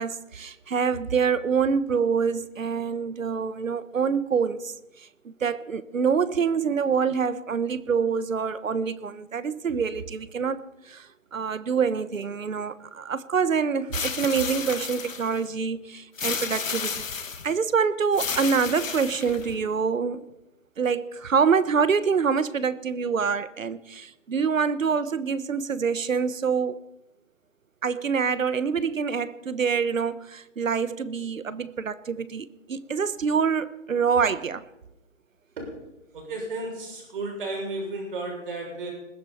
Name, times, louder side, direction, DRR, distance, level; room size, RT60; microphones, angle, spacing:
voice 1, 0.0-20.3 20.8-26.8 27.8-34.6, right 6 dB, 80° right, 1.2 m, -26 dB
sound 1, 13.9-15.4 16.2-17.5 18.1-19.6, left 5 dB, 75° left, 1.8 m, -32 dB
voice 2, 36.1-38.9, right 2 dB, 40° right, 7.0 m, -33 dB
21.0 x 15.5 x 4.3 m
hypercardioid pair, 160°, 39 cm